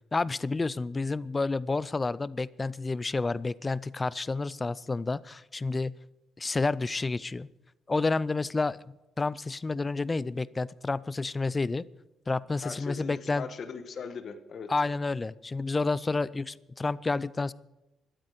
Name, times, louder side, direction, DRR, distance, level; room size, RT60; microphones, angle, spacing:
voice 1, 0.1-6.0 6.4-7.5 7.9-11.8 12.3-13.5 14.7-17.5, left 3 dB, 20° left, 20 dB, 0.4 m, -30 dB
voice 2, 12.6-14.7, left 5 dB, 45° left, 10 dB, 1.4 m, -39 dB
12.5 x 12.5 x 6.7 m, 0.98 s
cardioid pair, 140°, 0 cm